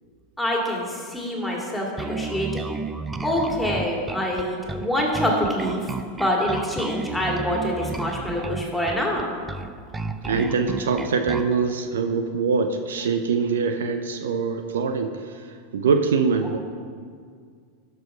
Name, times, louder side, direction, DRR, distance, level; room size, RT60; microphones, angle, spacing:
voice 1, 0.4-2.7 3.2-5.8 6.2-9.3, equal, 5° left, -2 dB, 2.3 m, -25 dB
Bass guitar, 2.0-11.6, right 3 dB, 15° right, 0.5 m, -32 dB
voice 2, 10.3-16.6, right 5 dB, 75° right, 8 dB, 0.5 m, -24 dB
12.0 x 4.8 x 4.9 m, 2.1 s
hypercardioid pair, 90°, 0 cm